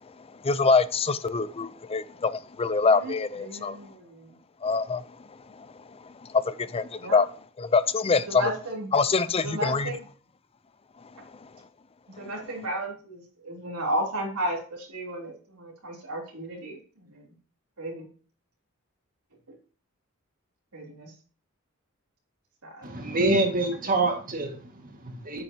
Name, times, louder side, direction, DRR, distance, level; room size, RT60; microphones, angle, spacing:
voice 1, 0.4-3.8 4.6-5.0 6.3-7.3 7.6-8.4 8.9-9.9, left 4 dB, 25° left, 0.5 m, -24 dB
voice 2, 3.4-4.3 7.0-7.2 8.3-8.9 9.4-10.0 12.2-16.8 17.8-18.1 20.7-21.1 22.6-22.9, right 1 dB, 80° right, 3.3 m, -33 dB
voice 3, 22.8-25.4, right 2 dB, 40° right, 1.9 m, -26 dB
8.7 x 8.2 x 2.9 m
head